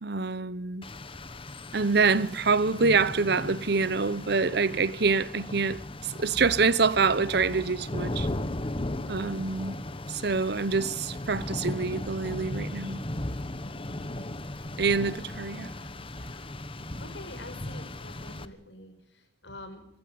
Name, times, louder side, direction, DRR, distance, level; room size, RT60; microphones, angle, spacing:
voice 1, 0.0-0.9 1.7-8.3 9.1-9.8 10.1-13.0 14.8-15.7, right 4 dB, 60° right, 1.0 m, -26 dB
Rain, 0.8-18.5, left 1 dB, 30° left, 1.2 m, -37 dB
voice 2, 17.0-19.9, left 2 dB, 70° left, 5.2 m, -46 dB
25.0 x 14.5 x 8.8 m
head